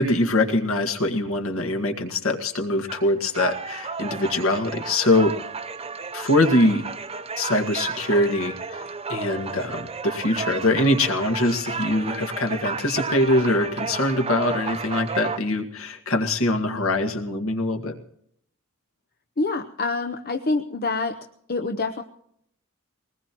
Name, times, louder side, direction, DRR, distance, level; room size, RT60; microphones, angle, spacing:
voice 1, 0.0-5.3 6.1-6.8 7.4-8.8 9.1-18.0, left 1 dB, 65° left, 4 dB, 1.9 m, -23 dB
sound 1, 2.9-15.4, right 5 dB, 30° right, 0.8 m, -32 dB
voice 2, 19.4-21.2 21.5-22.0, left 3 dB, 45° left, 5 dB, 0.8 m, -26 dB
21.5 x 19.5 x 3.0 m, 0.70 s
head